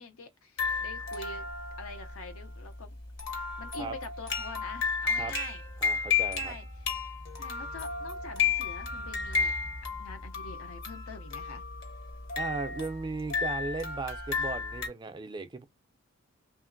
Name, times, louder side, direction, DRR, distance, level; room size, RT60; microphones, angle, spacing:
voice 1, 0.0-1.5 1.8-2.9 3.3-5.6 6.3-6.7 7.4-9.6 10.0-11.6, left 4 dB, 75° left, 0.6 m, -45 dB
sound 1, 0.6-14.9, left 5 dB, 55° left, 0.9 m, -33 dB
voice 2, 5.8-6.5 12.4-15.6, right 3 dB, 20° right, 0.3 m, -36 dB
2.9 x 2.5 x 2.5 m
head